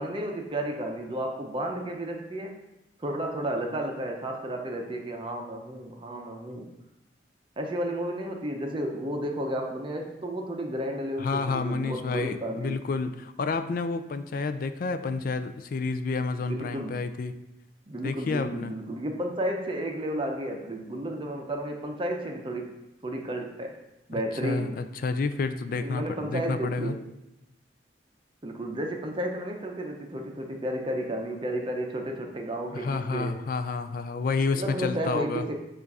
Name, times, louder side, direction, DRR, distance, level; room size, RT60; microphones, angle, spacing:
voice 1, 0.0-2.6 3.0-6.7 7.6-12.8 16.5-16.9 17.9-22.8 23.0-23.8 24.1-24.8 25.8-27.0 28.4-33.5 34.5-35.5, right 1 dB, 30° right, 2 dB, 0.6 m, -32 dB
voice 2, 11.2-17.3 18.0-18.7 24.4-26.9 32.7-35.4, left 4 dB, 50° left, 10 dB, 0.3 m, -30 dB
7.1 x 2.5 x 5.3 m, 0.90 s
head